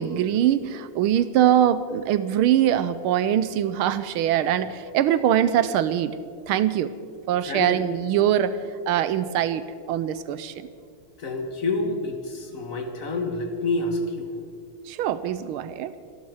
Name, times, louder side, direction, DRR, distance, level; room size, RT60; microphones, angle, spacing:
voice 1, 0.0-6.2 6.5-6.9 7.3-10.7 14.8-15.9, right 10 dB, 80° right, 14 dB, 1.5 m, -23 dB
voice 2, 11.2-14.3, left 2 dB, 40° left, 4 dB, 1.9 m, -28 dB
26.0 x 11.5 x 4.9 m, 2.2 s
omnidirectional pair, 2.4 m